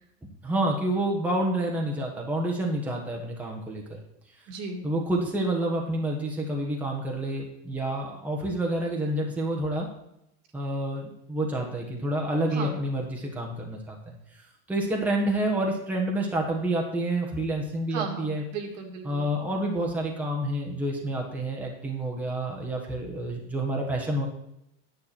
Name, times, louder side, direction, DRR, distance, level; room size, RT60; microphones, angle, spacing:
voice 1, 0.4-4.0 4.8-9.9 10.5-14.1 14.7-18.4 19.0-24.3, right 1 dB, 5° right, -1 dB, 1.4 m, -28 dB
voice 2, 4.5-4.8 12.5-12.8 17.9-19.3, right 5 dB, 55° right, 3 dB, 2.1 m, -35 dB
9.7 x 9.3 x 4.4 m, 0.79 s
supercardioid pair, 150°, 33 cm